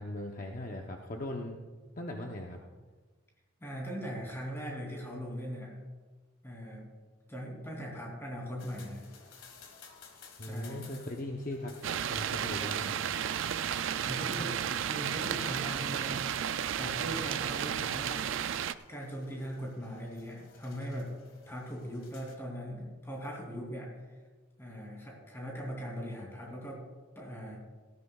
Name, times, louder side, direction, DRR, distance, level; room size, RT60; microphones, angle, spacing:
voice 1, 0.0-1.6 2.0-2.6 10.4-11.7 12.1-12.9, left 1 dB, 40° left, 1 dB, 0.8 m, -39 dB
voice 2, 3.6-5.8 6.4-6.9 7.3-9.1 10.4-10.8 14.0-14.6 14.9-16.4 16.8-18.6 18.9-21.1 21.5-23.9 24.6-26.8 27.1-27.6, equal, 10° left, -1 dB, 2.9 m, -40 dB
sound 1, 8.6-22.4, left 5 dB, 90° left, 1.7 m, -57 dB
sound 2, 11.8-18.7, right 9 dB, 70° right, 0.4 m, -33 dB
18.0 x 13.5 x 2.4 m, 1.3 s
head